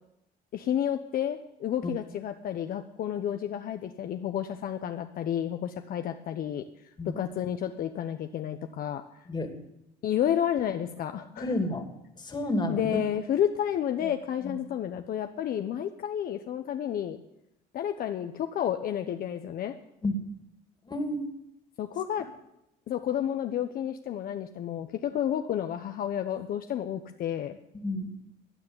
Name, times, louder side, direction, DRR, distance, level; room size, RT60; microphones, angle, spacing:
voice 1, 0.5-6.6 7.2-9.0 10.0-11.5 12.7-17.2 17.7-19.7 21.8-22.2 22.9-27.6, left 10 dB, 60° left, 7 dB, 1.0 m, -31 dB
voice 2, 11.4-11.9 12.2-13.0 14.0-14.1 14.4-14.6 20.0-20.2 20.9-21.2 27.7-28.1, left 1 dB, 25° left, 7 dB, 2.6 m, -30 dB
15.5 x 9.6 x 9.6 m, 0.84 s
cardioid pair, 110°, 17 cm